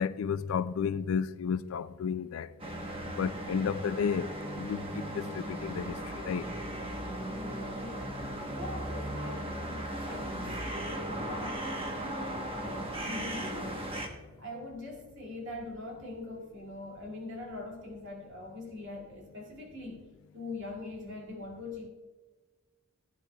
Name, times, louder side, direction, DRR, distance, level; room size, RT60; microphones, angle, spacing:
voice 1, 0.0-2.5 3.2-6.0 6.3-6.5, left 6 dB, 75° left, 0.3 m, -32 dB
sound 1, 2.6-14.1, right 1 dB, 25° right, 1.0 m, -37 dB
voice 2, 7.3-8.1 8.4-13.8 14.4-20.1 20.3-21.9, left 2 dB, 60° right, 2.3 m, -43 dB
15.0 x 9.8 x 2.2 m
head